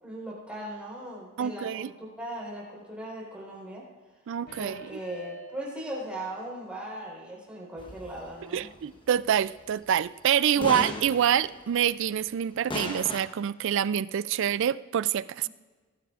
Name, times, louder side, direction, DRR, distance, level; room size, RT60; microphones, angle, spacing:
voice 1, 0.0-3.8 4.6-8.7 10.5-11.0 15.4-15.5, right 1 dB, 5° right, -5 dB, 3.9 m, -39 dB
voice 2, 1.4-1.9 4.3-5.0 8.5-15.5, right 9 dB, 60° right, 17 dB, 0.3 m, -26 dB
sound 1, 4.5-6.3 6.6-6.7, right 1 dB, 55° left, 3.5 m, -47 dB
sound 2, 7.8-9.5 9.9-10.0 10.6-12.4 12.7-13.2, left 1 dB, 25° left, 1.1 m, -37 dB
19.0 x 12.5 x 2.5 m, 1.4 s
head